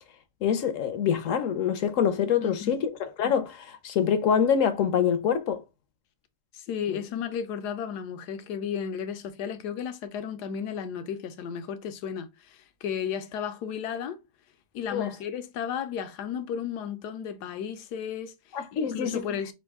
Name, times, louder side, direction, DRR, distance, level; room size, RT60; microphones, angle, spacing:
voice 1, 0.4-5.6 14.9-15.1 18.5-19.4, left 8 dB, 65° left, 0.8 m, -25 dB
voice 2, 2.4-2.8 6.5-14.2 14.7-18.3 18.7-19.5, left 8 dB, 85° left, 1.3 m, -34 dB
5.2 x 2.6 x 3.4 m
omnidirectional pair, 1.7 m